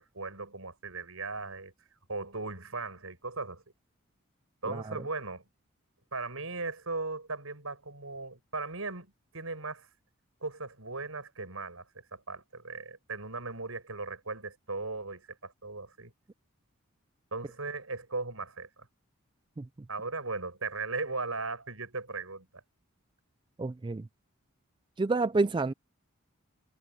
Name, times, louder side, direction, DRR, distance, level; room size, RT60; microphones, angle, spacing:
voice 1, 0.0-1.7 2.1-3.6 4.6-5.4 6.1-9.9 10.4-16.1 17.3-18.9 19.9-22.5, right 3 dB, 70° right, 5.8 m, -38 dB
voice 2, 23.6-24.1 25.0-25.7, right 3 dB, 20° right, 0.3 m, -29 dB
head